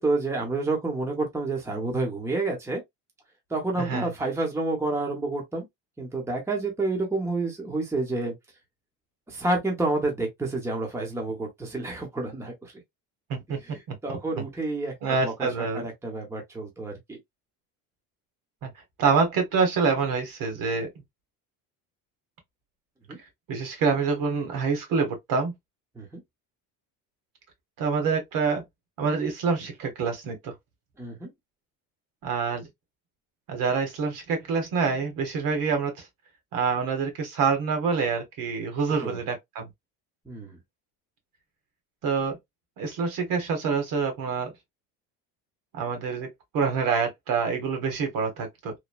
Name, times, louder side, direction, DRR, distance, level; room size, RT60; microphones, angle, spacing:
voice 1, 0.0-2.8 3.5-5.6 6.0-8.3 9.3-12.7 13.7-14.9 15.2-17.2 23.1-23.2 26.0-26.1 31.0-31.3 39.0-39.2 40.3-40.6, right 2 dB, 5° right, 0.8 m, -29 dB
voice 2, 3.7-4.1 13.3-13.6 13.9-14.0 15.0-15.9 18.6-18.7 19.0-20.9 23.5-25.5 27.8-28.6 29.0-30.5 32.2-32.7 33.5-36.1 36.5-39.7 42.0-42.4 42.8-44.5 45.7-48.7, right 5 dB, 60° right, 1.2 m, -26 dB
3.1 x 2.1 x 2.2 m
cardioid pair, 120°, 39 cm